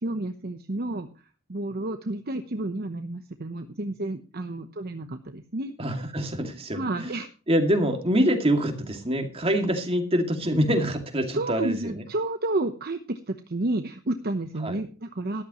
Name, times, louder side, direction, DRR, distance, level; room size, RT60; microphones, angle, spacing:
voice 1, 0.0-1.1 1.5-5.7 6.7-7.3 11.3-15.4, right 2 dB, 50° right, 7 dB, 1.0 m, -30 dB
voice 2, 5.8-7.1 7.5-12.0 14.6-14.8, equal, 30° right, 4 dB, 2.4 m, -25 dB
14.0 x 12.5 x 3.1 m, 0.35 s
head